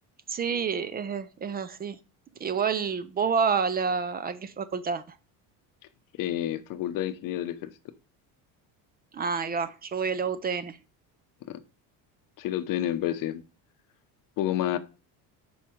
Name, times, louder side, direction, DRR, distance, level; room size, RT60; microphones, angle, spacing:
voice 1, 0.3-2.0 2.4-5.0 9.1-10.8, right 6 dB, 25° right, 0.4 m, -28 dB
voice 2, 6.2-7.7 11.5-11.6 12.4-13.4 14.4-14.8, left 12 dB, 55° left, 0.7 m, -29 dB
5.4 x 4.8 x 4.4 m
cardioid pair, 120°, 40 cm